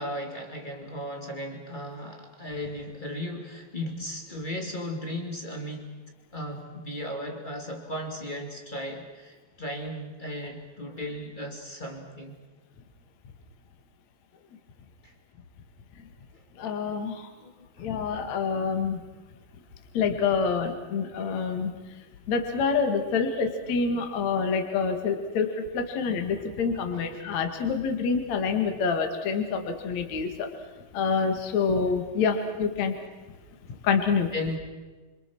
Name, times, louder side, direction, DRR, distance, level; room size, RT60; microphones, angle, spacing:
voice 1, 0.0-6.0 6.3-12.4 15.0-15.1 17.4-18.0 26.4-27.2 29.2-29.3 34.3-34.6, left 1 dB, 30° left, 2 dB, 0.8 m, -36 dB
voice 2, 16.6-17.3 17.8-19.0 19.9-21.7 22.3-30.5 30.9-33.0 33.8-34.3, left 5 dB, 50° left, 5 dB, 2.4 m, -27 dB
28.0 x 26.5 x 6.2 m, 1.3 s
omnidirectional pair, 5.8 m